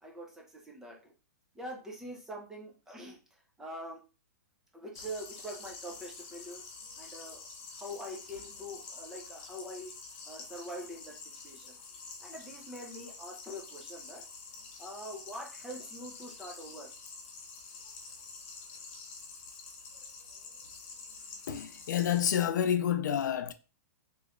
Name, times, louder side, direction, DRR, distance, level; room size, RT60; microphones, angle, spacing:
voice 1, 0.0-1.1 1.5-4.0 4.7-6.6 7.0-7.5 7.7-9.9 10.2-11.7 12.2-14.2 14.8-16.9, equal, 5° right, 0.5 m, -44 dB
sound 1, 4.9-22.2, left 4 dB, 40° left, 0.6 m, -48 dB
voice 2, 21.5-23.5, left 9 dB, 75° left, 0.4 m, -29 dB
3.0 x 3.0 x 2.5 m
hypercardioid pair, 165°, 10 cm